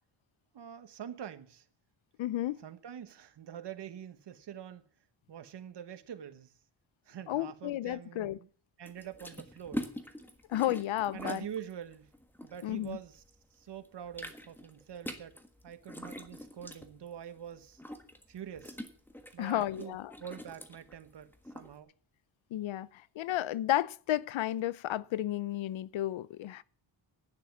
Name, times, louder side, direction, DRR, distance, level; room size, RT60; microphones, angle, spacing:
voice 1, 0.5-1.7 2.6-4.8 5.3-6.5 7.0-8.5 8.8-9.9 11.1-12.1 12.4-13.2 13.5-17.8 18.3-18.8 19.3-21.9, right 9 dB, 60° right, 1.4 m, -45 dB
voice 2, 2.2-2.6 7.3-8.4 10.5-11.4 12.6-13.0 19.4-20.1 22.5-26.6, left 13 dB, 90° left, 0.7 m, -32 dB
sound 1, 8.9-13.4 13.7-21.7, left 1 dB, 5° left, 1.4 m, -44 dB
11.5 x 9.7 x 7.3 m
wide cardioid pair, 140°, 45 cm